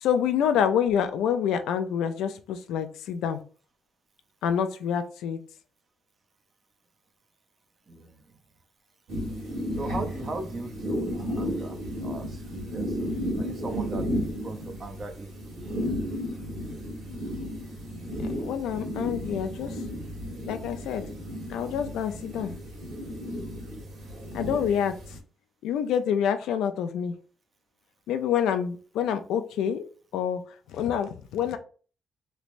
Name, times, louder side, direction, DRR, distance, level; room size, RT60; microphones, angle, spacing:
voice 1, 0.0-3.4 4.4-5.4 18.4-19.7 20.5-21.1 21.5-22.5 24.3-25.0 25.6-27.1 28.1-29.8 30.1-30.4 30.7-31.6, left 8 dB, 85° left, 9 dB, 0.3 m, -27 dB
voice 2, 7.9-8.2 9.8-15.6, right 3 dB, 40° right, 6 dB, 0.6 m, -39 dB
sound 1, 9.1-25.2, equal, 80° right, 1.5 m, -33 dB
3.2 x 3.0 x 2.5 m, 0.40 s
cardioid pair, 90°, 0 cm